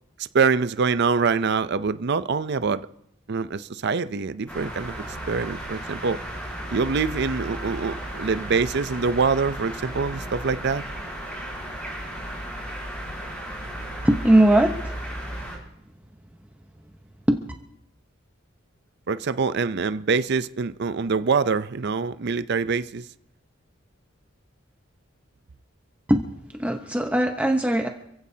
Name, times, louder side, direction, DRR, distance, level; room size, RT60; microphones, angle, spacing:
voice 1, 0.2-2.9 3.3-4.9 5.3-6.2 6.7-10.8 19.1-23.0, right 5 dB, 55° right, 0.5 m, -24 dB
sound 1, 4.5-15.6, right 1 dB, 10° left, 8.0 m, -34 dB
voice 2, 14.0-15.0 17.3-17.4 26.1-26.3 26.6-27.9, right 1 dB, 5° right, 0.9 m, -20 dB
28.0 x 15.5 x 2.8 m
head